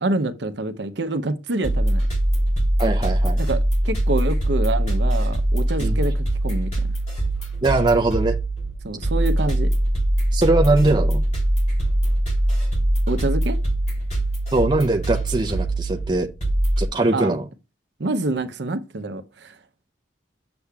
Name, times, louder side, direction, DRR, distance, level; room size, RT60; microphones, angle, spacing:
voice 1, 0.0-2.0 3.4-3.6 3.8-6.7 8.8-9.7 13.1-13.6 17.1-17.4 18.0-19.6, right 2 dB, 65° right, 0.7 m, -26 dB
sound 1, 1.6-16.9, right 1 dB, 35° left, 3.3 m, -22 dB
voice 2, 2.8-3.4 5.8-6.0 7.6-8.4 10.3-11.2 14.5-16.3 16.8-17.5, right 2 dB, 25° right, 0.6 m, -21 dB
8.2 x 6.9 x 2.3 m
head